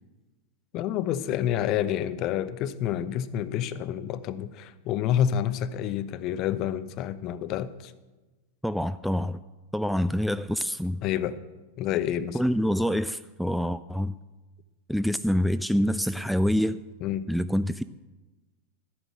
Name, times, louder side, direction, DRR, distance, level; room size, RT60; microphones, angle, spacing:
voice 1, 0.7-7.9 11.0-11.4 11.8-12.4 17.0-17.3, left 10 dB, 40° left, 16 dB, 0.6 m, -28 dB
voice 2, 8.6-9.4 9.7-11.0 12.3-14.1 14.9-16.8 17.3-17.8, equal, ahead, 13 dB, 0.3 m, -26 dB
12.5 x 8.9 x 6.4 m, 1.2 s
figure-of-eight pair, 90°, 0 cm